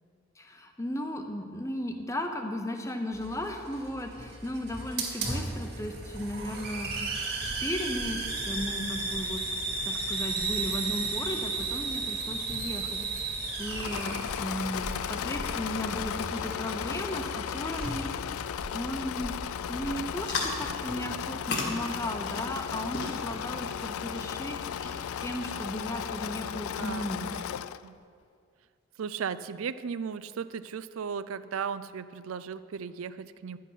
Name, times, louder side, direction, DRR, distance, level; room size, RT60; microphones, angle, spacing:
voice 1, 0.4-7.1 7.4-9.4 9.8-18.3 18.7-19.3 19.7-27.4, equal, 15° left, 5 dB, 0.8 m, -36 dB
Hiss, 3.1-21.0, right 3 dB, 50° right, 2.3 m, -35 dB
Engine / Mechanisms, 13.6-27.9, left 9 dB, 85° left, 0.3 m, -35 dB
sound 1, 20.2-26.5, left 3 dB, 55° left, 1.4 m, -39 dB
voice 2, 29.0-33.6, right 6 dB, 80° right, 15 dB, 0.4 m, -36 dB
11.5 x 8.5 x 5.7 m, 2.3 s
head